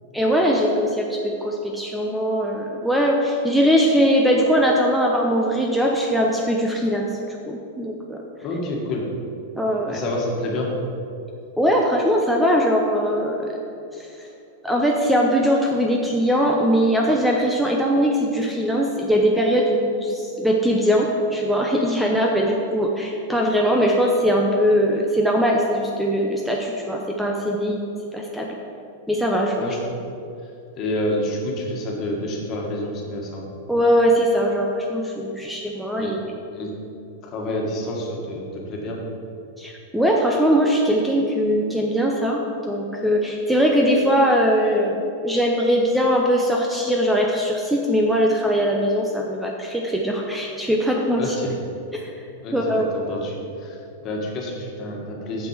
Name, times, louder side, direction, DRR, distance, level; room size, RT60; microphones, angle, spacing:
voice 1, 0.1-7.1 7.5-8.2 9.5-10.0 11.6-13.6 13.9-14.1 14.6-27.8 28.1-28.5 29.1-29.6 33.7-36.2 39.6-51.2 51.9-52.1 52.5-52.9, equal, 5° right, -1 dB, 0.7 m, -21 dB
voice 2, 8.4-9.0 9.9-10.7 29.6-29.9 30.4-33.5 36.0-36.1 36.5-36.7 37.2-39.0 51.2-51.6 52.4-55.5, left 1 dB, 40° left, -1 dB, 1.8 m, -28 dB
7.6 x 6.3 x 4.9 m, 2.6 s
hypercardioid pair, 120°, 0 cm